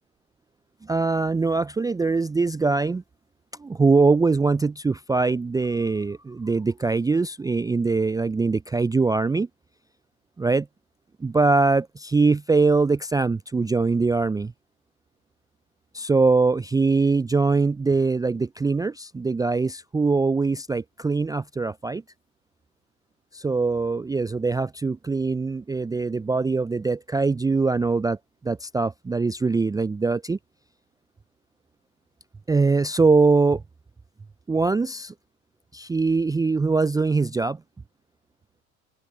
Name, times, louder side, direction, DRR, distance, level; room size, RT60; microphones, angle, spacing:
voice 1, 0.9-3.0 3.6-9.5 10.4-10.7 11.2-14.5 15.9-22.0 23.3-28.2 28.4-30.4 32.5-33.6 34.5-35.1 35.7-37.6, right 4 dB, 10° right, 0.5 m, -22 dB
open air
figure-of-eight pair, 70°, 44 cm